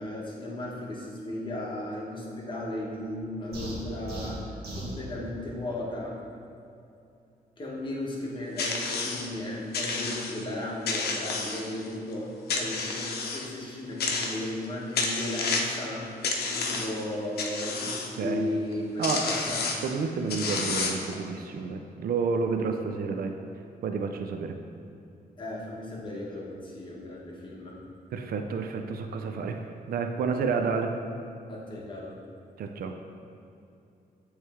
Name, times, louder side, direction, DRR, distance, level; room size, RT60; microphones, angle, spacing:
voice 1, 0.0-4.5 4.7-6.2 7.6-20.0 25.4-27.8 31.5-32.2, left 1 dB, 30° left, -4 dB, 1.2 m, -35 dB
sound 1, 3.5-5.0, right 1 dB, 90° right, 1.4 m, -37 dB
sound 2, 8.6-9.3 9.7-10.4 10.9-11.9 12.5-13.5 14.0-14.6 15.0-15.8 16.2-17.0 17.4-18.1 18.7-18.8 19.0-19.9 20.3-21.1, left 4 dB, 90° left, 0.6 m, -30 dB
voice 2, 18.2-18.5 19.0-19.2 19.8-23.4 23.8-24.6 28.1-29.6 29.9-31.0 32.6-33.0, right 5 dB, 70° right, 5 dB, 0.4 m, -30 dB
8.2 x 3.2 x 3.6 m, 2.6 s
cardioid pair, 105°, 16 cm